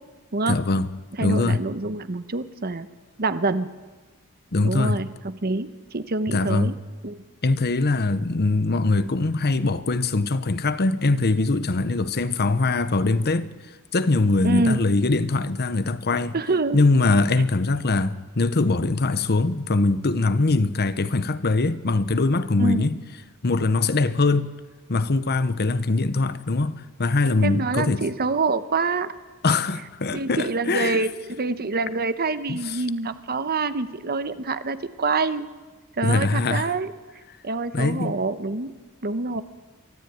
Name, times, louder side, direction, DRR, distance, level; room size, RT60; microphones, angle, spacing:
voice 1, 0.5-0.9 1.2-1.6 4.5-5.0 6.3-6.8 7.4-13.5 13.9-16.4 16.7-23.0 23.4-24.5 24.9-28.0 29.4-31.0 32.5-32.8 36.0-36.7 37.7-38.2, left 3 dB, 45° left, 0.9 m, -22 dB
voice 2, 1.2-2.9 3.2-3.7 4.6-6.7 7.0-7.2 14.4-14.8 16.3-16.8 22.6-22.9 27.4-29.1 30.1-35.4 36.0-36.9 37.4-38.7 39.0-39.4, right 3 dB, 45° right, 1.0 m, -26 dB
24.0 x 13.5 x 9.4 m
head